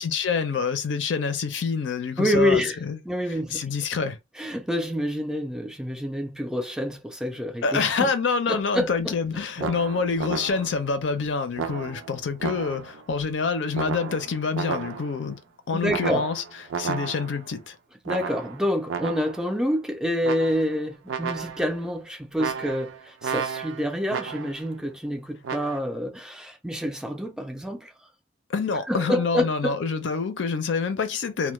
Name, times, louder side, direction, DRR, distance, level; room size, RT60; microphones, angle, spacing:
voice 1, 0.0-3.0 3.3-4.2 7.6-15.4 15.7-16.4 16.8-17.8 28.5-31.5, left 5 dB, 65° left, 0.5 m, -27 dB
voice 2, 2.2-2.8 3.1-3.7 4.4-8.1 8.5-9.2 9.6-9.7 15.7-16.3 18.1-27.9 28.9-29.8, equal, 5° right, 0.4 m, -27 dB
sound 1, 9.6-10.9 11.6-13.0 13.7-15.2 15.9-17.5 18.0-19.5 20.2-20.8 21.1-21.8 22.4-24.7 25.4-25.8, right 6 dB, 90° right, 0.4 m, -33 dB
2.2 x 2.1 x 3.0 m
head